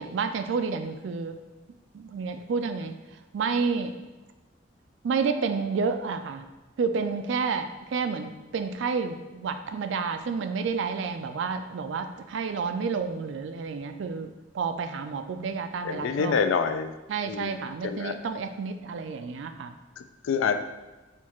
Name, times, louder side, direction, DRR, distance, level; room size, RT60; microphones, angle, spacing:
voice 1, 0.0-1.4 1.9-3.0 3.3-4.0 5.0-6.4 6.8-16.4 17.1-19.7, right 5 dB, 70° right, 8 dB, 0.3 m, -30 dB
voice 2, 15.8-16.9 17.2-17.6 17.8-18.1 20.0-20.6, left 6 dB, 80° left, 9 dB, 0.3 m, -27 dB
4.4 x 2.4 x 4.3 m, 1.1 s
head